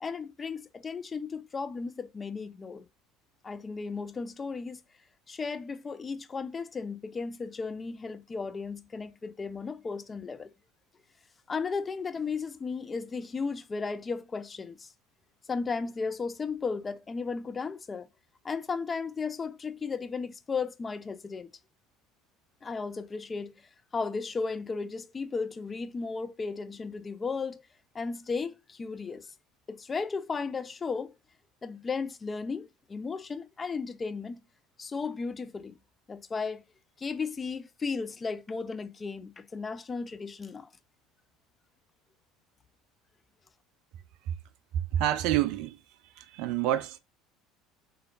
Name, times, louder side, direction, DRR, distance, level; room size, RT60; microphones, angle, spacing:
voice 1, 0.0-2.9 3.4-4.8 5.3-10.5 11.5-14.9 15.5-18.1 18.4-21.5 22.6-23.5 23.9-27.6 27.9-29.3 29.7-31.1 31.6-34.4 34.8-35.8 36.1-36.6 37.0-40.7, left 4 dB, 25° left, 0.4 m, -35 dB
voice 2, 44.7-45.8 46.2-47.0, right 12 dB, 55° right, 0.3 m, -28 dB
3.5 x 3.1 x 2.3 m
figure-of-eight pair, 65°, 0 cm